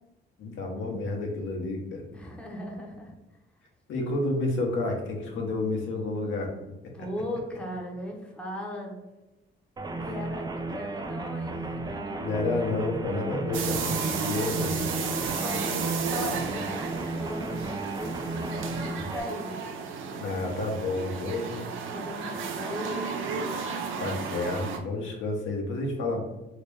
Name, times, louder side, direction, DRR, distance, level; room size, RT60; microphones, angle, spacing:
voice 1, 0.4-2.0 3.9-6.5 12.2-14.9 20.2-21.7 24.0-26.2, left 2 dB, 75° left, 0 dB, 0.9 m, -30 dB
voice 2, 2.1-3.2 6.9-8.9 10.0-12.4 15.4-19.6 21.8-23.3, left 1 dB, 5° left, -1 dB, 0.8 m, -38 dB
sound 1, 9.8-19.2, right 2 dB, 20° right, 0.4 m, -34 dB
sound 2, 13.5-24.8, right 5 dB, 90° right, 0.5 m, -33 dB
2.9 x 2.8 x 3.4 m, 1.0 s
cardioid pair, 90°, 20 cm